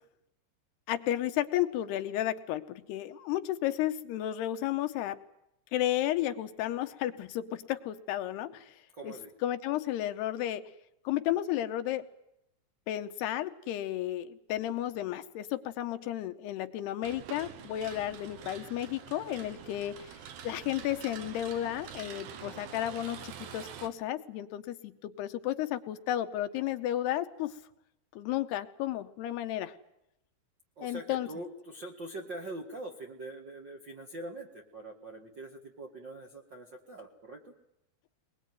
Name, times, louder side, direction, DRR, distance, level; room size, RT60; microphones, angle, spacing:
voice 1, 0.9-5.2 5.7-8.7 9.0-9.2 9.4-10.6 11.1-12.1 12.9-20.1 20.4-27.5 28.2-29.7 30.8-31.3, left 13 dB, 80° left, 9 dB, 3.1 m, -33 dB
voice 2, 8.9-9.3 19.9-20.0 30.8-37.4, right 2 dB, 45° right, 2 dB, 1.5 m, -43 dB
Pegasus starting, 17.0-23.9, right 8 dB, 70° right, 3.1 m, -46 dB
22.0 x 21.0 x 9.4 m, 0.82 s
omnidirectional pair, 4.7 m